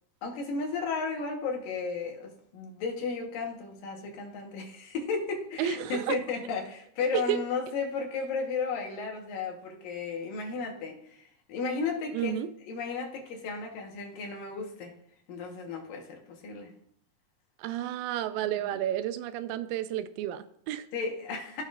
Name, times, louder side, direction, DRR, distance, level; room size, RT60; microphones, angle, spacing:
voice 1, 0.2-12.3 12.6-14.9 15.3-16.7 18.4-18.8 20.9-21.6, left 4 dB, 75° left, 1 dB, 3.0 m, -34 dB
voice 2, 5.6-6.2 7.1-7.4 12.1-12.5 17.6-20.9, right 12 dB, 90° right, 12 dB, 2.3 m, -31 dB
15.5 x 5.6 x 2.5 m, 0.68 s
omnidirectional pair, 4.0 m